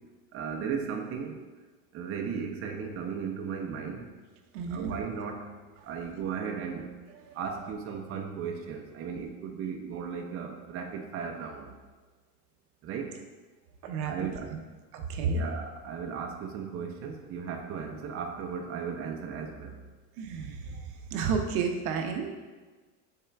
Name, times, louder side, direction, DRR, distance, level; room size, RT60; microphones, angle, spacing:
voice 1, 0.3-1.4 1.9-4.1 4.7-5.5 5.8-6.9 7.3-11.7 12.8-13.2 14.1-14.5 15.2-19.7, right 6 dB, 35° right, 3 dB, 0.5 m, -36 dB
voice 2, 4.5-4.9 7.3-7.4 13.8-14.6 14.9-15.4 20.2-22.4, right 5 dB, 85° right, 4 dB, 0.7 m, -32 dB
5.5 x 3.7 x 2.3 m, 1.3 s
supercardioid pair, 125°, 42 cm